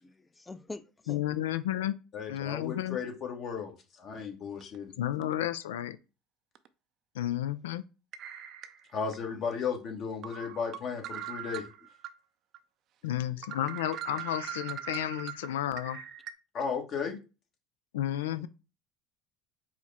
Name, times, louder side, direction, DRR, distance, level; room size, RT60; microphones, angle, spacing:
voice 1, 0.0-1.2 9.3-9.4 18.3-18.5, left 2 dB, 15° left, 0.5 m, -45 dB
voice 2, 1.1-1.9 2.3-3.0 5.0-6.0 7.2-7.8 13.0-16.0 17.1-17.2 17.9-18.5, left 12 dB, 85° left, 0.3 m, -32 dB
voice 3, 2.1-4.9 8.9-11.6 16.5-17.2, left 6 dB, 50° left, 1.3 m, -35 dB
sound 1, 4.6-4.8 5.2-5.3 6.5-6.7 8.1-9.2 9.6-9.7 10.2-12.1 12.5-12.6 13.0-13.1 13.4-16.3, right 10 dB, 55° right, 0.4 m, -41 dB
4.6 x 2.2 x 4.2 m
hypercardioid pair, 80°, 0 cm